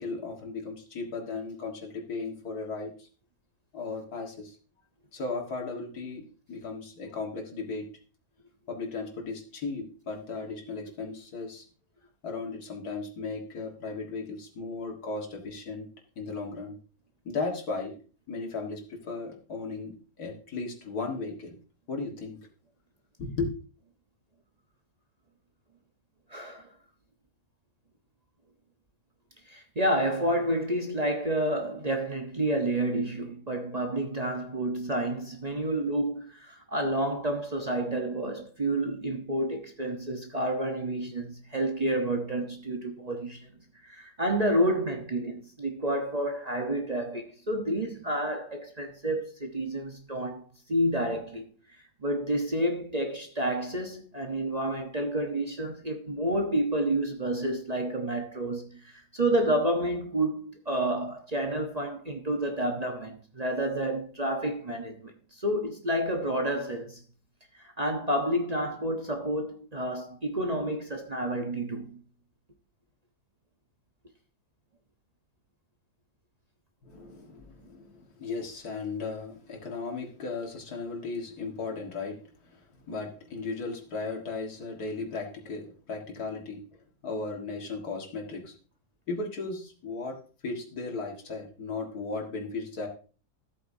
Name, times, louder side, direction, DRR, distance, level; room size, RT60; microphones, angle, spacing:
voice 1, 0.0-3.1 3.7-4.6 5.1-7.9 8.7-11.7 12.2-15.9 16.2-16.8 17.2-17.9 18.3-21.5 21.9-22.4 23.2-23.5 76.8-86.6 87.0-88.6 89.1-92.9, left 3 dB, 80° left, 2.3 m, -36 dB
voice 2, 26.3-26.7 29.5-43.5 43.8-50.4 50.7-51.4 52.0-67.0 67.6-72.0, right 1 dB, 30° right, 1.0 m, -29 dB
14.0 x 8.4 x 2.7 m
omnidirectional pair, 1.6 m